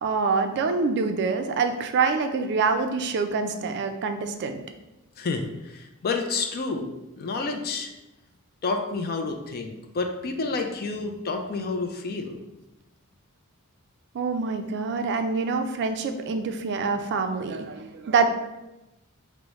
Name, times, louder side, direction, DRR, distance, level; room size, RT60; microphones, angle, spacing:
voice 1, 0.0-4.6 14.1-18.3, right 4 dB, 50° right, 6 dB, 0.3 m, -26 dB
voice 2, 5.2-7.9 8.6-12.4, left 3 dB, 45° left, 5 dB, 0.4 m, -29 dB
4.7 x 2.1 x 3.0 m, 0.96 s
head